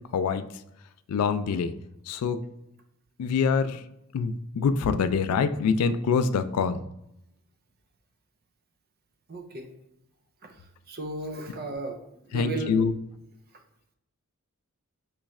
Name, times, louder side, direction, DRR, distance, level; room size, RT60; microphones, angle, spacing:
voice 1, 0.1-0.4 1.1-1.7 2.1-2.4 3.2-3.8 4.1-6.8 12.3-12.9, left 5 dB, 85° left, 11 dB, 0.3 m, -25 dB
voice 2, 9.3-9.7 10.9-12.0 12.3-12.7, right 2 dB, 45° right, 5 dB, 0.5 m, -34 dB
3.2 x 3.1 x 3.6 m, 0.82 s
head